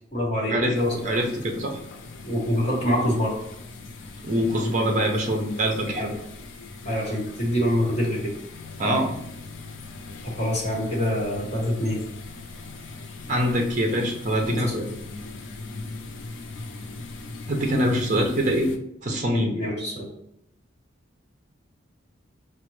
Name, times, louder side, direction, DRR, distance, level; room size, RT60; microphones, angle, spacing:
voice 1, 0.0-1.0 2.2-3.4 6.0-6.1 6.8-8.3 10.2-12.0 14.5-14.8 19.3-20.1, equal, 30° left, -4 dB, 1.2 m, -25 dB
sound 1, 0.7-18.8, left 3 dB, 70° left, 0.4 m, -40 dB
voice 2, 1.0-1.8 4.2-6.1 8.8-9.1 13.3-14.9 17.5-18.7 19.0-19.5, equal, 40° right, 2 dB, 0.6 m, -24 dB
5.0 x 2.1 x 3.1 m, 0.77 s
head